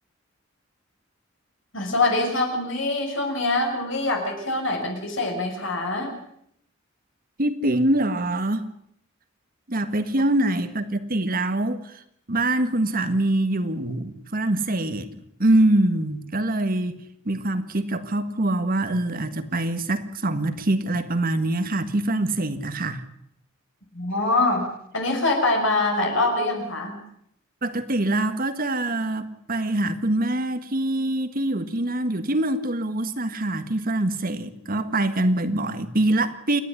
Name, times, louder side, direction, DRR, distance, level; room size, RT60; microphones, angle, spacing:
voice 1, 1.7-6.1 23.9-24.6 24.9-27.0, left 2 dB, 65° left, 6.3 m, -24 dB
voice 2, 7.4-8.6 9.7-12.0 12.3-23.0 27.6-36.6, right 1 dB, 45° right, 1.6 m, -24 dB
28.5 x 11.0 x 9.9 m
head